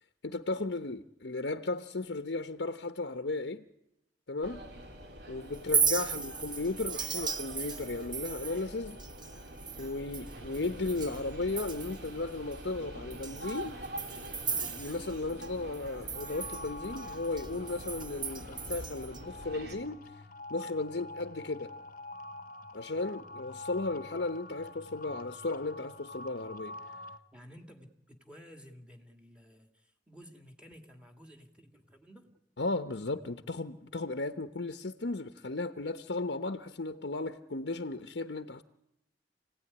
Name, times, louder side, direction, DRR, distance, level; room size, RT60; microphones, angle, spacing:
voice 1, 0.2-3.7 4.3-4.7 5.3-9.0 9.8-13.8 14.6-20.0 20.5-21.7 22.7-26.8 32.6-38.6, left 2 dB, 75° left, 0.9 m, -35 dB
sound 1, 4.4-19.8, right 1 dB, 65° right, 3.7 m, -45 dB
Chink clink, 5.5-11.2 11.5-12.1 12.5-12.6 13.1-15.5 15.7-19.2, right 6 dB, 25° right, 1.2 m, -36 dB
sound 2, 16.2-27.2, left 2 dB, 50° left, 1.0 m, -46 dB
voice 2, 27.3-32.4, equal, 5° right, 2.3 m, -54 dB
28.5 x 17.0 x 9.8 m
head